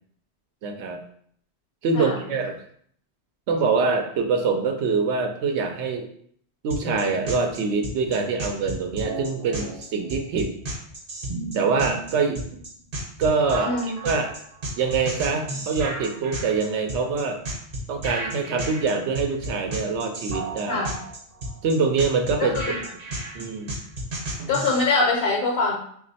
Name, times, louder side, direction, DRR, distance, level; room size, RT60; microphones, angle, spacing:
voice 1, 0.6-1.0 1.8-2.5 3.5-6.0 6.6-10.5 11.5-12.4 13.2-14.3 14.8-17.4 17.9-20.9 21.6-22.6 23.3-23.7, right 4 dB, 85° right, 4 dB, 0.9 m, -24 dB
sound 1, 6.7-24.8, right 1 dB, 55° right, 1.0 m, -33 dB
voice 2, 13.6-13.9 20.7-21.0 22.4-22.6 24.5-25.8, left 3 dB, 60° left, -3 dB, 0.9 m, -23 dB
2.9 x 2.4 x 4.1 m, 0.63 s
omnidirectional pair, 1.1 m